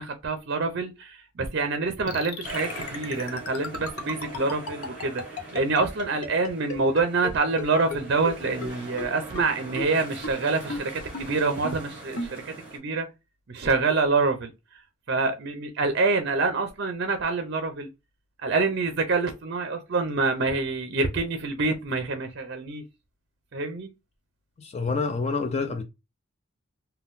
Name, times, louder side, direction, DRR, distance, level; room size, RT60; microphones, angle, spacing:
voice 1, 0.0-13.1 13.5-14.5 15.1-17.9 18.4-22.8 23.5-23.9, right 3 dB, 50° right, 0.5 m, -26 dB
sound 1, 2.1-7.3 7.6-7.7 7.9-8.0 8.2-8.3 8.6-8.7 9.0-9.1 9.4-9.5 9.8-9.9 10.2-10.3 10.7-10.8 11.1-11.2 11.6-11.7 12.2-12.3, left 3 dB, 90° left, 0.7 m, -33 dB
sound 2, 2.4-12.8, right 2 dB, 10° right, 1.3 m, -42 dB
voice 2, 24.6-25.8, left 4 dB, 30° left, 0.3 m, -27 dB
3.6 x 2.2 x 2.5 m
head